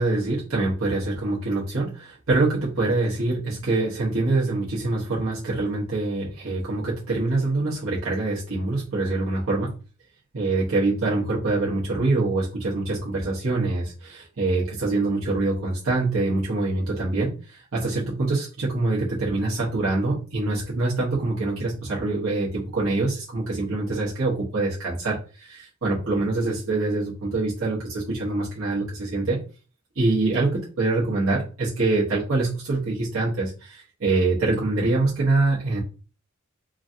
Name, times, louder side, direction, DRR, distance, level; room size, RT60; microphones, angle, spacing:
voice 1, 0.0-9.7 10.3-29.4 29.9-35.8, right 2 dB, 85° right, -7 dB, 1.0 m, -25 dB
3.1 x 2.5 x 2.6 m, 0.35 s
head